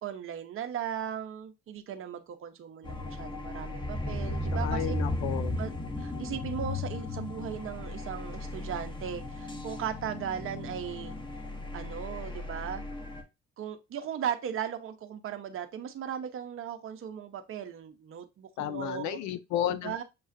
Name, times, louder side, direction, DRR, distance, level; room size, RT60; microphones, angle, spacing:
voice 1, 0.0-4.9 5.6-5.7 6.0-11.1 11.7-12.9 13.6-19.2 19.8-20.0, right 9 dB, 45° right, 0.8 m, -37 dB
sound 1, 2.8-13.2, left 2 dB, 15° left, 1.0 m, -35 dB
voice 2, 4.5-5.6 18.6-19.9, left 10 dB, 75° left, 0.6 m, -32 dB
6.6 x 2.4 x 2.5 m
supercardioid pair, 65°, 29 cm